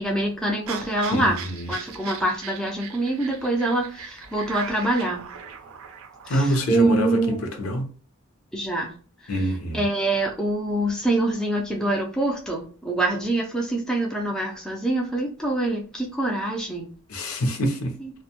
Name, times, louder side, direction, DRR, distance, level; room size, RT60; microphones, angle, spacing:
voice 1, 0.0-1.4 1.7-5.2 6.3-7.4 8.5-8.9 9.2-16.9 18.0-18.1, right 2 dB, 5° left, 0.3 m, -25 dB
sound 1, 0.7-6.6, right 7 dB, 75° right, 0.4 m, -39 dB
voice 2, 1.1-1.7 6.3-7.9 9.3-9.8 17.1-18.0, equal, 80° left, 0.6 m, -25 dB
2.6 x 2.1 x 2.8 m
head